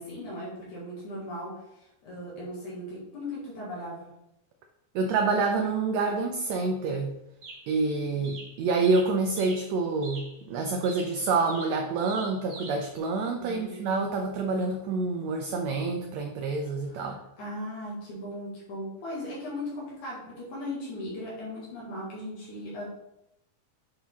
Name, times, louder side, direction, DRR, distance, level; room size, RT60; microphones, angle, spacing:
voice 1, 0.0-4.1 8.1-8.3 13.4-13.7 16.9-22.8, left 1 dB, 70° left, -6 dB, 3.2 m, -38 dB
voice 2, 4.9-7.1 7.7-17.2, right 3 dB, 80° right, 3 dB, 1.6 m, -27 dB
sound 1, 6.4-6.5 7.4-7.8 8.2-9.7 10.0-10.4 10.8-13.0, right 3 dB, 50° right, 1.2 m, -45 dB
8.6 x 4.0 x 3.6 m, 0.86 s
omnidirectional pair, 3.7 m